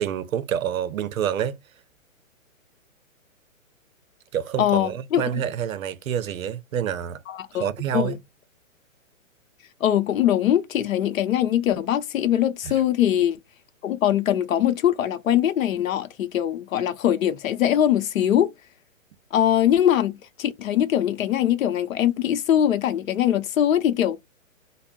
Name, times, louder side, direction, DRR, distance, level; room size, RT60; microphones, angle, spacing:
voice 1, 0.0-1.6 4.3-7.2 7.6-8.2 12.6-12.7, right 9 dB, 80° right, 0.6 m, -27 dB
voice 2, 4.6-5.4 7.3-7.7 7.9-8.2 9.8-13.4 13.8-18.5 19.3-24.2, left 11 dB, 75° left, 0.6 m, -22 dB
2.5 x 2.0 x 3.6 m
hypercardioid pair, 170°, 41 cm